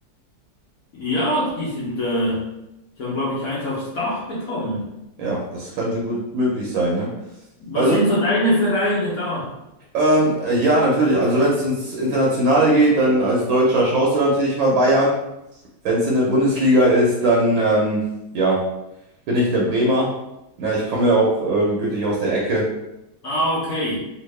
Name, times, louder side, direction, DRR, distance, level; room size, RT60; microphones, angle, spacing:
voice 1, 0.9-2.5 3.0-4.9 7.6-9.6 23.2-24.0, equal, 55° left, -8 dB, 1.0 m, -23 dB
voice 2, 5.2-7.1 7.7-8.0 9.9-15.2 15.8-18.1 18.3-18.7 19.3-20.2 20.6-22.7, right 1 dB, 75° right, -3 dB, 1.4 m, -19 dB
3.5 x 2.5 x 3.2 m, 0.91 s
omnidirectional pair, 2.3 m